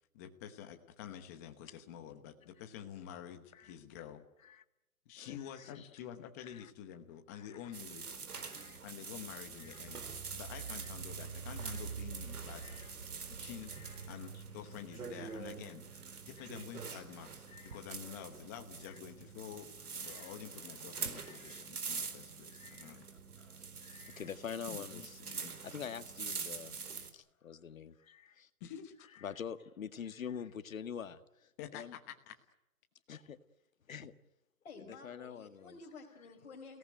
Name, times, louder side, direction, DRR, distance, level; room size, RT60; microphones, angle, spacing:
voice 1, 0.1-4.3 5.0-8.0 8.8-10.1 10.3-12.9 13.3-15.8 16.2-19.7 20.0-23.1 24.7-25.5 28.6-29.1 31.6-32.4, left 10 dB, 10° left, 6 dB, 1.0 m, -49 dB
voice 2, 5.2-5.8 6.5-6.7 7.3-7.6 8.4-8.8 9.6-9.8 10.7-10.8 11.6-11.8 12.6-12.9 13.8-13.9 14.3-14.4 16.4-16.5 17.5-17.8 20.0-20.3 21.2-21.6 22.5-23.0 23.4-28.5 29.2-32.0 33.1-33.4 33.9-34.1 34.8-35.8, left 7 dB, 65° left, 10 dB, 1.9 m, -46 dB
sound 1, 7.7-27.1, right 5 dB, 85° right, 4.3 m, -45 dB
voice 3, 34.6-36.8, left 4 dB, 45° left, -2 dB, 4.5 m, -52 dB
29.5 x 18.0 x 9.1 m, 0.92 s
hypercardioid pair, 170°, 44 cm